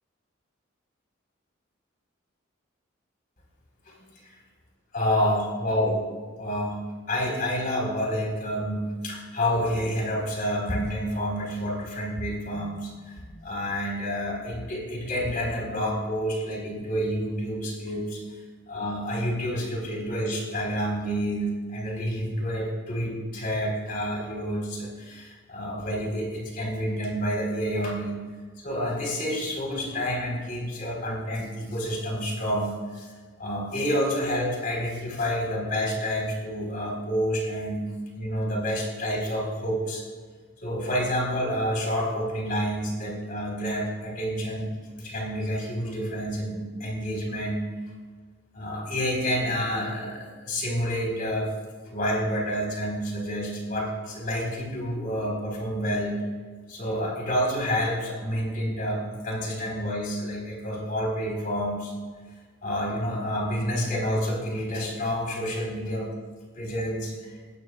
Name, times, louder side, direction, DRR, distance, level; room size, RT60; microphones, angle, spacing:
voice 1, 4.9-6.0 6.4-6.8 7.1-18.2 18.7-28.2 28.6-37.9 38.1-40.0 40.6-44.7 45.0-47.6 48.5-51.5 51.9-56.2 56.7-61.9 62.6-66.1 66.5-67.3, equal, 45° left, -2 dB, 4.1 m, -29 dB
19.5 x 17.5 x 2.4 m, 1.5 s
head